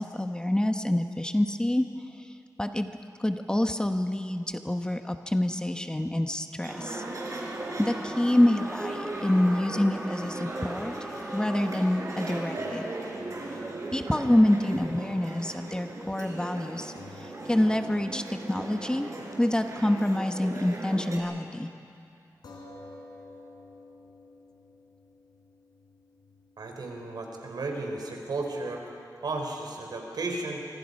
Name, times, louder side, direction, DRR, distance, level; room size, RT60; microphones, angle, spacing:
voice 1, 0.0-1.8 2.2-2.9 3.2-7.0 7.8-10.9 11.3-12.9 13.9-19.1 19.4-21.7, left 1 dB, 10° left, 6 dB, 1.0 m, -27 dB
sound 1, 6.6-21.2, right 2 dB, 50° right, 4.4 m, -38 dB
sound 2, 6.7-12.2, equal, 5° right, 1.9 m, -40 dB
sound 3, 12.6-21.1 21.4-21.5 22.4-29.0, left 2 dB, 80° left, 4.2 m, -53 dB
voice 2, 26.6-28.8 29.2-30.6, right 2 dB, 80° right, 2 dB, 3.9 m, -34 dB
25.0 x 25.0 x 5.4 m, 2.6 s
wide cardioid pair, 90°, 7 cm